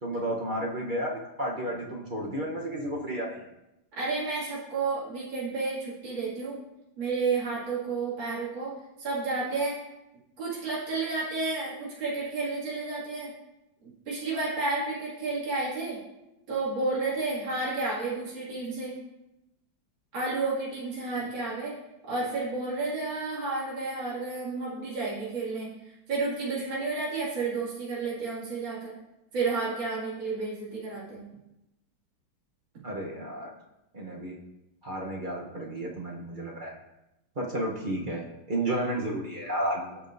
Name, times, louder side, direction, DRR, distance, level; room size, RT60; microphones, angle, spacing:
voice 1, 0.0-3.4 21.2-21.3 32.8-33.5 33.9-34.4 34.8-36.7 37.4-40.0, right 1 dB, 45° right, -2 dB, 0.6 m, -32 dB
voice 2, 4.0-6.6 7.0-9.8 10.4-13.3 13.8-16.0 16.5-19.0 20.1-21.8 22.1-28.9 29.3-31.3, right 3 dB, 70° right, -7 dB, 3.1 m, -31 dB
15.5 x 5.3 x 2.6 m, 0.92 s
omnidirectional pair, 2.2 m